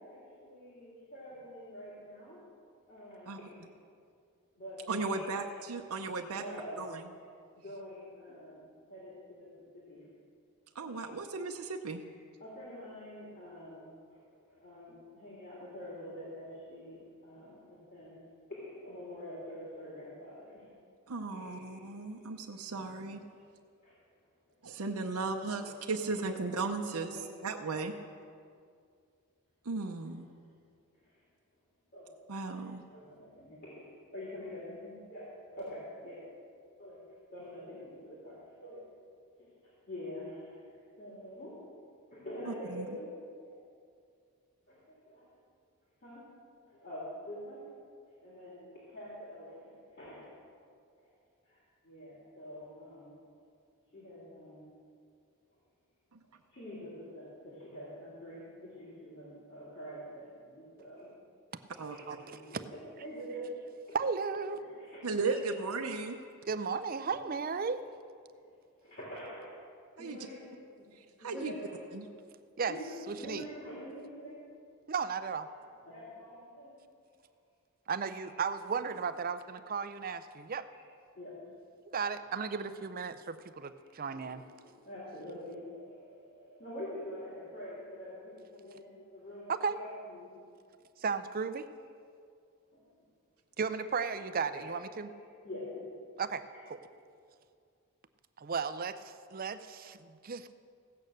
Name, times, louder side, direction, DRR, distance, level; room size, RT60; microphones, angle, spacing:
voice 1, 0.0-2.4 2.9-3.6 4.6-7.1 7.5-10.1 10.9-11.3 12.4-18.2 18.5-20.7 21.3-23.4 23.8-24.6 25.2-25.3 25.6-25.7 26.4-27.3 27.6-28.1 30.0-30.1 30.9-31.2 31.9-32.1 32.5-36.3 36.8-38.9 39.4-41.6 42.1-43.2 43.4-43.6 44.7-45.3 46.0-46.3 46.6-47.8 48.0-50.4 51.0-51.1 51.4-53.3 53.9-54.7 56.3-61.1 61.7-63.6 63.9-64.0 64.3-66.3 66.8-67.3 67.6-67.7 68.3-68.4 68.7-69.6 70.0-70.9 71.1-74.4 75.5-76.8 78.1-78.3 78.6-78.7 79.9-80.4 80.7-80.8 81.1-81.5 82.1-82.4 83.8-90.4 92.7-93.1 93.8-93.9 94.4-95.0 95.4-96.0, equal, 45° left, -8 dB, 3.3 m, -47 dB
voice 2, 4.9-6.4 6.8-7.0 10.7-12.0 21.1-23.2 24.6-27.1 27.4-27.9 29.6-30.3 32.3-32.8 42.7-42.8 56.1-56.2 61.8-62.0 65.0-66.2 70.0-70.2 70.9-71.5 71.9-72.1, right 3 dB, 75° right, 3 dB, 0.7 m, -36 dB
voice 3, 63.9-64.6 66.5-67.8 72.6-72.7 73.1-73.4 74.9-75.5 77.9-80.7 81.9-84.4 89.5-89.8 91.0-91.7 93.6-95.1 96.2-96.4 98.4-100.5, right 5 dB, 40° right, 11 dB, 0.5 m, -35 dB
16.0 x 8.6 x 6.6 m, 2.3 s
head